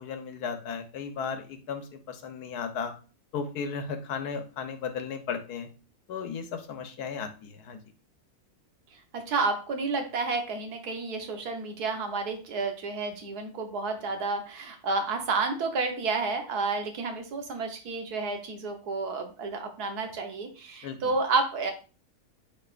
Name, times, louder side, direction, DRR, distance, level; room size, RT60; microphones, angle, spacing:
voice 1, 0.0-2.9 3.3-5.7 6.1-7.8 20.8-21.1, left 6 dB, 80° left, 7 dB, 1.5 m, -35 dB
voice 2, 9.1-21.7, right 3 dB, 80° right, 5 dB, 1.6 m, -30 dB
9.1 x 4.3 x 2.5 m, 0.35 s
omnidirectional pair, 1.6 m